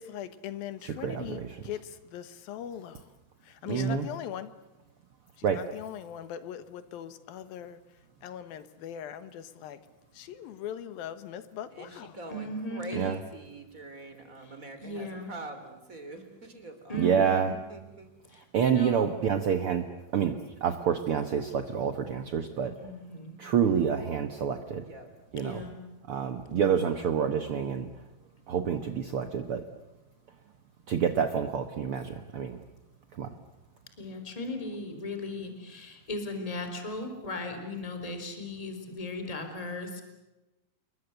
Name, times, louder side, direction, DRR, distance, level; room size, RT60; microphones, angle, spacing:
voice 1, 0.0-3.1 3.4-4.5 5.4-7.8 8.2-9.8 10.1-12.2, left 10 dB, 80° left, 3.0 m, -40 dB
voice 2, 0.8-1.5 3.7-4.0 5.4-5.6 12.9-13.2 17.0-17.5 18.5-19.8 20.1-20.3 20.6-22.7 23.4-24.8 25.3-25.6 26.1-27.9 28.5-29.6 30.9-32.6 33.2-33.3, right 7 dB, 65° right, 1.4 m, -27 dB
voice 3, 11.7-18.1 24.8-25.1, right 2 dB, 20° right, 3.6 m, -44 dB
voice 4, 12.3-13.0 14.4-14.5 14.8-15.3 16.9-17.6 18.3-19.0 22.8-23.4 25.4-25.8 26.5-26.9 34.0-40.0, left 1 dB, 10° left, 3.7 m, -37 dB
28.0 x 22.5 x 8.1 m
omnidirectional pair, 4.2 m